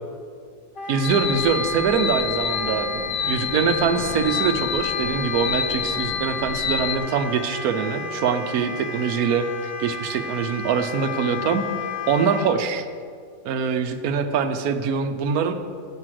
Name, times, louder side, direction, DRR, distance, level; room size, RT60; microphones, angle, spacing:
Wind instrument woodwind instrument, 0.8-12.5, left 4 dB, 40° left, 0.9 m, -32 dB
voice 1, 0.9-11.6 12.1-12.8 13.4-15.5, right 6 dB, 80° right, 8 dB, 1.2 m, -23 dB
sound 1, 1.0-7.0, left 7 dB, 70° left, 1.0 m, -28 dB
7.6 x 6.3 x 7.5 m, 2.2 s
omnidirectional pair, 1.6 m